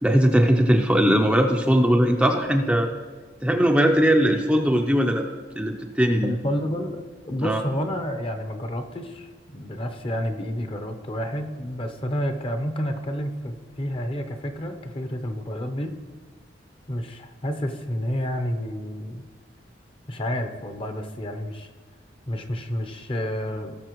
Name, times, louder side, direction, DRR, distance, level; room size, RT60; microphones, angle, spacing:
voice 1, 0.0-2.9 3.4-5.3 5.6-6.3 7.4-7.6, equal, 5° right, 2 dB, 0.5 m, -20 dB
voice 2, 6.2-16.0 16.9-19.2 20.1-21.7 22.3-23.8, equal, 30° left, 6 dB, 0.8 m, -30 dB
18.0 x 6.6 x 3.1 m, 1.5 s
head